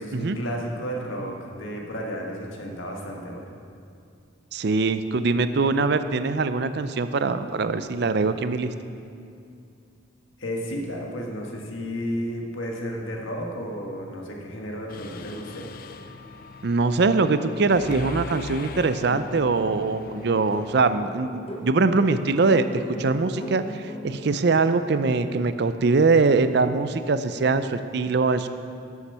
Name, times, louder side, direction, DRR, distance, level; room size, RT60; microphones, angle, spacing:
voice 1, 0.0-3.5 10.4-15.7, equal, 80° left, 0 dB, 1.7 m, -32 dB
voice 2, 4.5-8.7 16.6-28.5, right 3 dB, 55° right, 11 dB, 0.5 m, -22 dB
Mechanisms, 14.9-20.8, left 4 dB, 45° left, 0.4 m, -41 dB
sound 1, 18.8-24.3, left 1 dB, 30° left, 0.8 m, -39 dB
13.0 x 7.2 x 5.6 m, 2.5 s
head